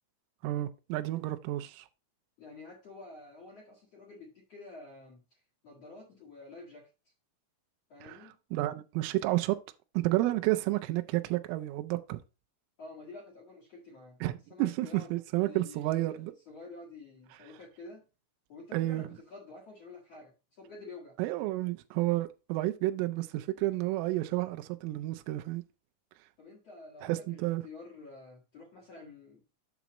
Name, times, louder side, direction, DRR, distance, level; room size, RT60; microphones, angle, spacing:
voice 1, 0.4-1.9 8.0-8.2 8.5-9.6 9.9-12.2 14.2-16.3 18.7-19.1 21.2-25.6 27.0-27.7, right 17 dB, 90° right, 3.2 m, -31 dB
voice 2, 2.4-6.9 7.9-8.4 12.8-14.2 14.5-18.0 18.5-21.2 26.4-29.4, left 3 dB, 85° left, 1.4 m, -49 dB
8.2 x 6.0 x 3.0 m
omnidirectional pair, 5.6 m